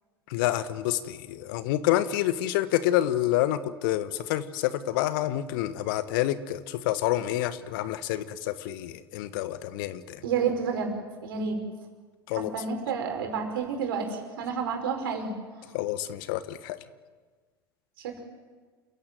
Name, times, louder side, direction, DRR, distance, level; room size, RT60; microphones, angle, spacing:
voice 1, 0.3-10.2 12.3-12.5 15.7-16.8, left 13 dB, 60° left, 13 dB, 1.4 m, -28 dB
voice 2, 10.2-10.9 11.2-11.6 12.3-15.3 18.0-18.2, right 6 dB, 65° right, 3 dB, 5.4 m, -30 dB
28.5 x 16.0 x 9.3 m, 1.5 s
figure-of-eight pair, 80°, 13 cm